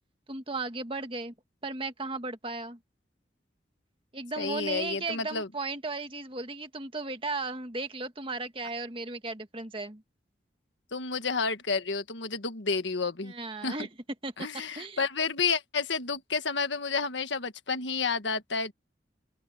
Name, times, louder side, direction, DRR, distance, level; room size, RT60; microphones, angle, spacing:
voice 1, 0.3-1.3 1.6-2.8 4.1-10.0 13.2-13.9 14.2-14.3 14.8-15.1, right 3 dB, 30° right, 1.7 m, -35 dB
voice 2, 4.4-5.5 10.9-13.3 13.6-13.8 14.4-18.7, left 4 dB, 80° left, 1.5 m, -30 dB
open air
head